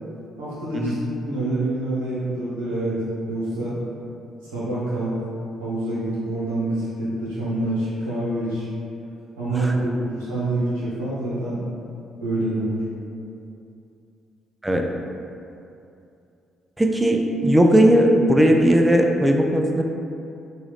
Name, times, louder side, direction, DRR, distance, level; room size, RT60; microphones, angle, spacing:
voice 1, 0.4-0.9 1.2-3.0 3.3-3.8 4.4-5.1 5.6-8.7 9.4-11.6 12.2-12.8, right 2 dB, 85° right, -10 dB, 0.9 m, -26 dB
voice 2, 16.8-19.8, equal, 15° right, 2 dB, 0.4 m, -17 dB
3.0 x 2.4 x 3.2 m, 2.6 s
hypercardioid pair, 45°, 0 cm